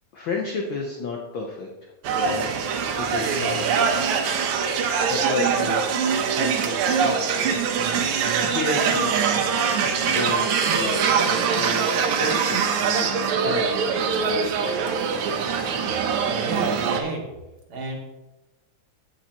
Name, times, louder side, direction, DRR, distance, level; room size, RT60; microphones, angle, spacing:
voice 1, 0.1-2.4 3.0-3.9 5.1-7.3 8.5-9.4 10.0-11.1 11.5-14.5, left 4 dB, 70° left, 1 dB, 1.2 m, -32 dB
sound 1, 2.0-17.0, right 6 dB, 75° right, 2.2 m, -23 dB
voice 2, 16.1-17.2 17.7-17.9, right 3 dB, 50° right, -1 dB, 2.9 m, -32 dB
16.0 x 7.2 x 3.0 m, 1.0 s
omnidirectional pair, 3.4 m